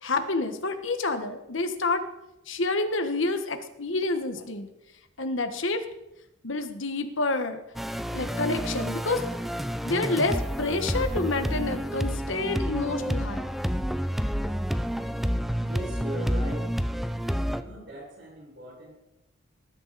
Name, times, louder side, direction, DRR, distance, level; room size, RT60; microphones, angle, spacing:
voice 1, 0.0-2.0 2.5-4.7 5.2-5.8 6.4-7.6 8.1-9.2 9.8-13.5, left 3 dB, 70° left, 7 dB, 1.5 m, -28 dB
sound 1, 7.8-17.6, equal, ahead, 0.5 m, -29 dB
voice 2, 15.7-16.7 17.4-19.0, right 1 dB, 60° right, -2 dB, 6.2 m, -39 dB
19.0 x 11.5 x 4.2 m, 0.89 s
head